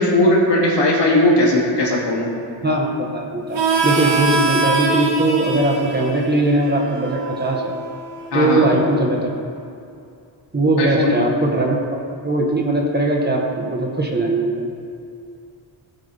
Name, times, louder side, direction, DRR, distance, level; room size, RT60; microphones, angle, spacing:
voice 1, 0.0-2.3 8.3-8.7 10.8-11.2, left 1 dB, 60° left, -4 dB, 3.0 m, -17 dB
voice 2, 2.6-7.7 8.3-9.3 10.5-12.0 12.2-14.7, right 2 dB, 20° right, -1 dB, 1.4 m, -20 dB
Harmonica, 3.5-8.8, right 3 dB, 65° right, 1.7 m, -23 dB
17.0 x 9.6 x 3.6 m, 2.5 s
wide cardioid pair, 140°, 47 cm